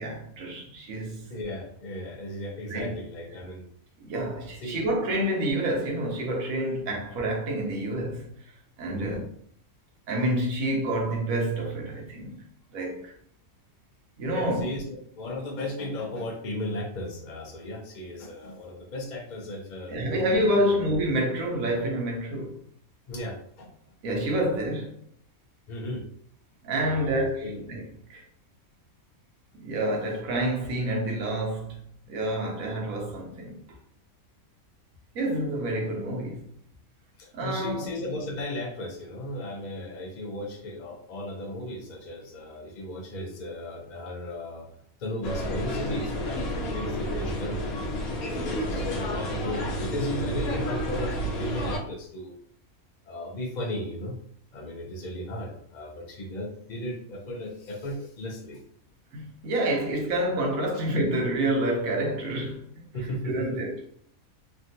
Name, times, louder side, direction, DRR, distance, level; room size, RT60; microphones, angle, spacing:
voice 1, 0.0-1.3 2.7-3.0 4.0-8.3 8.8-9.2 10.1-12.4 12.7-13.1 14.2-14.7 19.9-22.6 24.0-24.9 26.6-27.8 28.1-28.2 29.6-31.8 32.1-33.8 35.1-36.4 37.3-37.9 59.1-62.6 63.2-63.7, right 1 dB, 75° right, 1.2 m, -28 dB
voice 2, 1.3-3.6 4.6-4.8 8.9-9.2 14.3-20.8 23.1-23.7 25.7-26.0 26.8-27.6 37.2-44.7 45.0-52.3 53.1-54.2 54.5-58.6 62.9-63.6, left 1 dB, 60° left, 0.4 m, -36 dB
sound 1, 45.2-51.8, equal, 90° left, 1.1 m, -30 dB
3.3 x 2.3 x 2.6 m
omnidirectional pair, 1.5 m